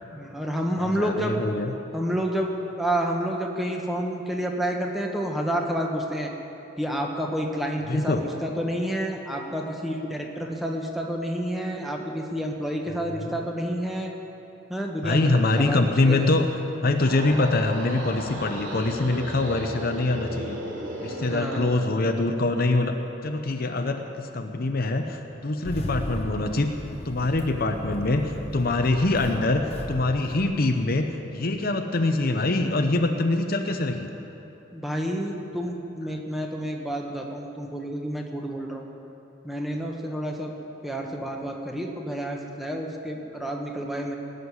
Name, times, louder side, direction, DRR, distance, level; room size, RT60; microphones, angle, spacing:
voice 1, 0.1-1.4 1.9-6.3 6.8-14.1 14.7-15.8 16.1-16.3 21.3-21.8 32.9-33.3 34.7-38.8 39.4-40.5 40.8-44.1, equal, ahead, 0 dB, 1.2 m, -29 dB
voice 2, 0.8-1.7 7.9-8.2 13.2-13.3 15.0-16.5 16.8-20.6 21.0-22.9 23.2-26.7 27.0-34.1 36.1-36.2, left 2 dB, 50° left, 5 dB, 0.7 m, -24 dB
sound 1, 16.8-21.7, equal, 85° right, 2.7 m, -35 dB
Engine starting, 25.6-31.2, left 1 dB, 30° left, 1.0 m, -37 dB
19.0 x 6.7 x 9.7 m, 3.0 s
head